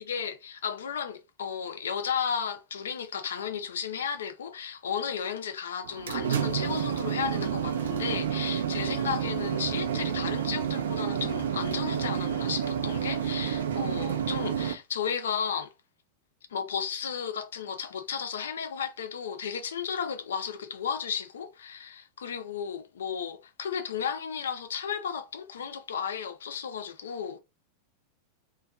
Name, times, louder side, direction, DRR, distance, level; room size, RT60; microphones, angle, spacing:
voice 1, 0.0-15.7 16.5-27.4, left 7 dB, 65° left, 0.4 m, -34 dB
sound 1, 5.8-14.7, right 8 dB, 60° right, 0.3 m, -30 dB
2.6 x 2.2 x 2.3 m
figure-of-eight pair, 90°, 0 cm